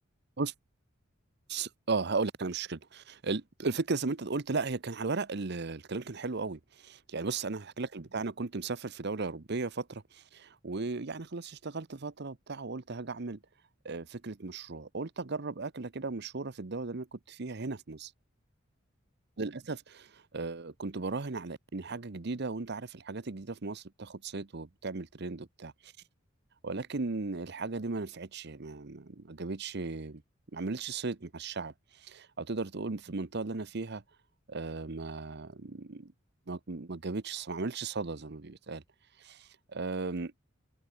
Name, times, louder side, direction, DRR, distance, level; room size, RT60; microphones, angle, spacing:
voice 1, 1.5-13.4 13.8-18.1 19.4-25.9 26.6-30.2 30.5-34.0 34.5-36.1 36.5-38.8 39.2-40.3, right 3 dB, 60° right, 0.9 m, -36 dB
open air
head